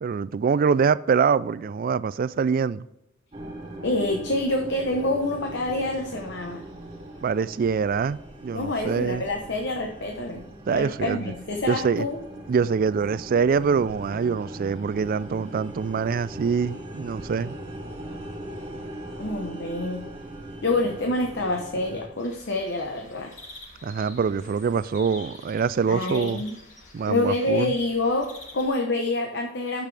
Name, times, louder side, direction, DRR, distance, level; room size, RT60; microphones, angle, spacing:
voice 1, 0.0-2.9 7.2-9.2 10.7-11.3 11.7-12.1 12.5-17.6 23.8-26.4 26.9-27.7, right 6 dB, 50° right, 0.3 m, -24 dB
sound 1, 3.3-22.1, right 1 dB, 30° right, 2.7 m, -40 dB
voice 2, 3.8-6.6 8.5-12.2 19.2-20.0 20.6-23.4 25.8-26.6 27.1-29.9, left 2 dB, 65° left, 1.0 m, -27 dB
sound 2, 22.2-28.7, left 2 dB, 40° left, 2.2 m, -47 dB
10.5 x 7.4 x 3.4 m
head